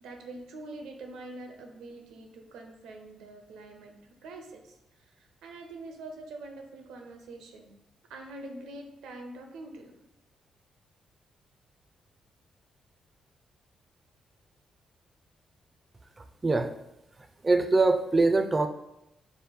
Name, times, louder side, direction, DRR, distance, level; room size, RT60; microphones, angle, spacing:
voice 1, 0.0-4.8 5.1-7.8 8.1-9.9, right 2 dB, 85° right, 3 dB, 0.6 m, -44 dB
voice 2, 17.4-18.7, right 3 dB, 30° right, 7 dB, 0.4 m, -23 dB
5.3 x 2.1 x 3.5 m, 0.87 s
supercardioid pair, 60°, 0 cm